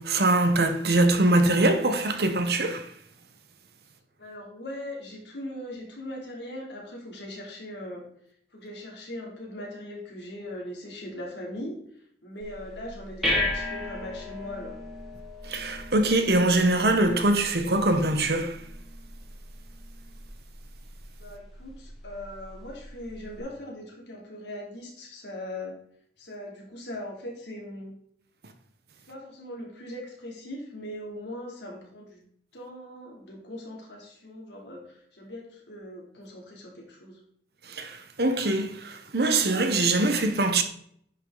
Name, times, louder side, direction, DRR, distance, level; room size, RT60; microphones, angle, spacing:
voice 1, 0.0-2.9 15.4-18.6 37.6-40.6, right 2 dB, 60° right, 1.0 m, -23 dB
voice 2, 4.2-8.0 8.5-11.8 12.2-14.8 21.2-25.8 26.2-27.9 29.1-32.2 32.5-37.2, left 1 dB, 80° left, 3.0 m, -40 dB
sound 1, 12.4-23.4, left 1 dB, ahead, 1.9 m, -36 dB
10.5 x 5.5 x 3.9 m
head